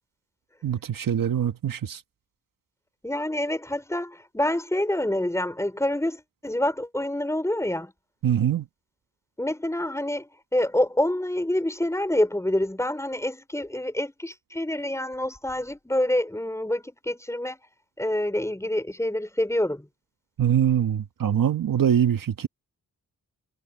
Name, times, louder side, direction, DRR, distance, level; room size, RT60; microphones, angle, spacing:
voice 1, 0.6-2.0 8.2-8.6 20.4-22.5, right 9 dB, 75° right, 1.4 m, -23 dB
voice 2, 3.0-7.9 9.4-17.6 18.0-19.9, left 1 dB, 10° left, 5.2 m, -27 dB
wide cardioid pair, 100°, 34 cm